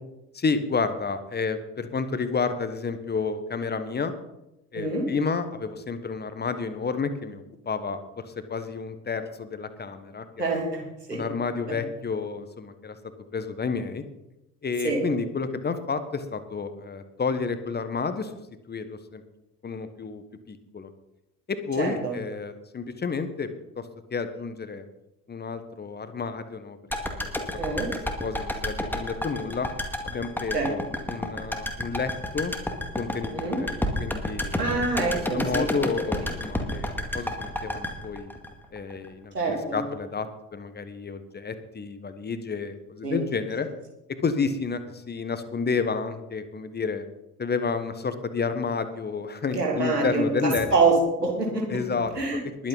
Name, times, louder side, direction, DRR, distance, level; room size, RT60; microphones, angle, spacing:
voice 1, 0.3-4.1 4.7-10.4 11.1-13.0 13.3-14.0 14.6-18.3 18.7-19.2 19.6-20.9 21.5-23.5 23.7-24.8 25.3-26.8 27.2-27.4 27.7-27.8 28.2-29.7 30.0-32.5 33.0-33.7 34.0-34.5 35.3-38.3 38.7-43.7 44.1-47.1 47.4-50.7 51.7-52.7, left 5 dB, 20° left, 11 dB, 1.3 m, -30 dB
voice 2, 4.7-5.1 10.4-10.8 11.1-11.2 14.8-15.0 21.8-22.1 27.6-27.9 30.5-30.7 33.3-33.6 34.6-35.7 39.3-39.8 43.0-43.2 49.5-50.9 51.2-51.6 52.2-52.4, right 3 dB, 85° right, -1 dB, 3.0 m, -25 dB
sound 1, 26.9-39.1 39.4-39.5, left 1 dB, 5° left, 2.0 m, -30 dB
21.0 x 8.7 x 4.0 m, 0.90 s
figure-of-eight pair, 60°, 47 cm